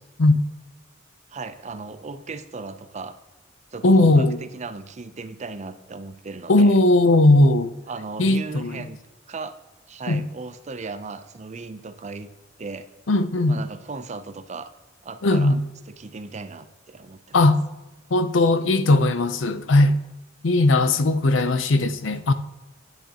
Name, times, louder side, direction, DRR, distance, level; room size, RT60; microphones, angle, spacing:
voice 1, 1.3-3.2 3.7-6.8 7.9-9.0 9.3-9.6 9.9-12.3 12.6-12.9 13.5-14.7 15.0-15.6 15.9-17.5, right 4 dB, 35° right, 0.6 m, -36 dB
voice 2, 3.8-4.4 6.5-7.7 8.2-8.9 10.1-10.2 13.1-13.6 15.2-15.6 17.3-17.6 18.1-19.9 20.4-22.3, left 2 dB, 70° left, 0.6 m, -18 dB
10.5 x 9.1 x 2.9 m
head